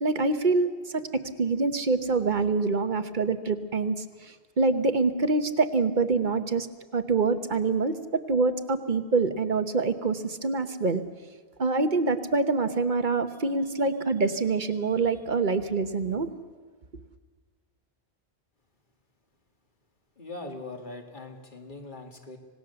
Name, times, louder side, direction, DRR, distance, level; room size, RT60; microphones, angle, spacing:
voice 1, 0.0-4.0 4.2-6.7 6.9-11.0 11.6-16.3, right 3 dB, 45° right, 10 dB, 1.1 m, -25 dB
voice 2, 20.2-22.4, left 2 dB, 45° left, 3 dB, 2.3 m, -41 dB
26.0 x 18.5 x 6.9 m, 1.4 s
omnidirectional pair, 1.1 m